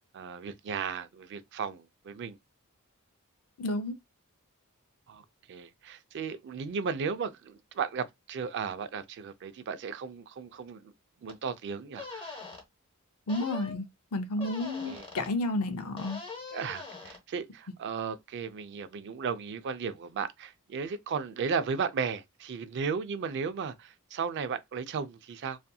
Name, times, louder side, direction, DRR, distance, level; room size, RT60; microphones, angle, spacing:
voice 1, 0.0-2.4 5.1-10.9 11.2-12.4 14.4-14.5 14.8-15.1 16.5-25.6, right 6 dB, 55° right, 0.3 m, -35 dB
voice 2, 3.6-4.0 13.3-13.8 14.1-16.2, left 2 dB, 85° left, 0.5 m, -31 dB
sound 1, 11.3-11.4 12.0-12.6 13.3-13.8 14.4-15.3 16.0-17.2, left 3 dB, 25° left, 0.8 m, -42 dB
2.7 x 2.5 x 2.2 m
head